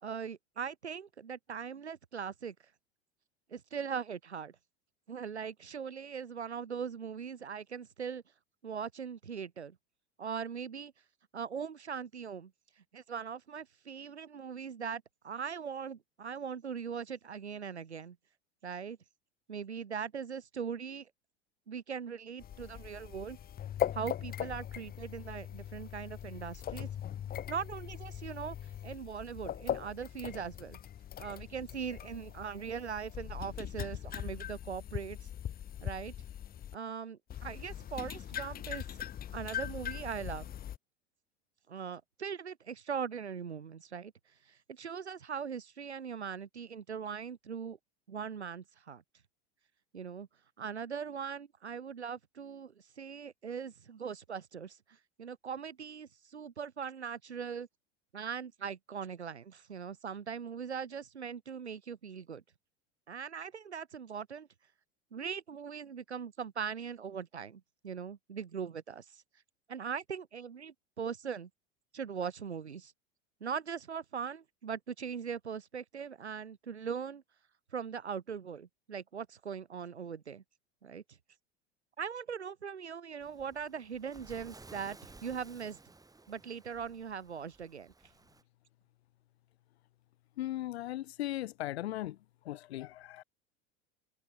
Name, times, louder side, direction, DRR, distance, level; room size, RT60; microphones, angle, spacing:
voice 1, 0.0-2.5 3.5-4.5 5.1-8.2 8.6-9.8 10.2-10.9 11.3-12.5 12.9-18.2 18.6-19.0 19.5-21.1 21.7-23.4 23.9-26.9 27.5-28.5 28.8-30.8 31.2-35.2 35.8-36.1 36.7-38.8 39.3-40.5 41.7-44.1 44.5-47.8 48.1-49.0 49.9-50.3 50.6-54.8 55.2-57.7 58.1-62.4 63.1-64.5 65.1-69.2 69.7-71.5 71.9-72.9 73.4-77.2 77.7-80.4 80.8-81.2 82.0-85.8 86.3-87.9, right 7 dB, 90° right, 1.4 m, -40 dB
sound 1, 22.4-36.7 37.3-40.8, left 10 dB, 25° left, 1.0 m, -40 dB
Waves surf, 83.2-88.4, right 3 dB, 10° right, 5.5 m, -56 dB
voice 2, 90.4-92.2 92.4-93.2, left 14 dB, 70° left, 1.0 m, -38 dB
hypercardioid pair, 85°, 33 cm